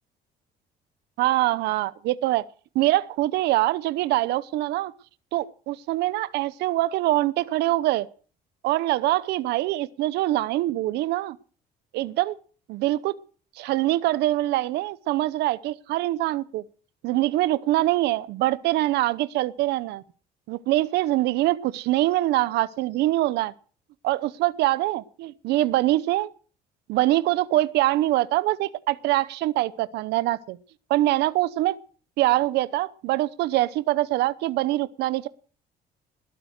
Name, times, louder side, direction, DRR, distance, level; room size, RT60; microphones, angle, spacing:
voice 1, 1.2-2.5 2.7-4.9 5.3-8.1 8.6-11.4 11.9-12.4 12.7-13.1 13.6-16.6 17.0-20.0 20.5-23.5 24.0-26.3 26.9-30.6 30.9-31.8 32.2-35.3, right 16 dB, 85° right, 17 dB, 0.8 m, -24 dB
20.5 x 8.9 x 6.5 m, 0.42 s
cardioid pair, 110°, 17 cm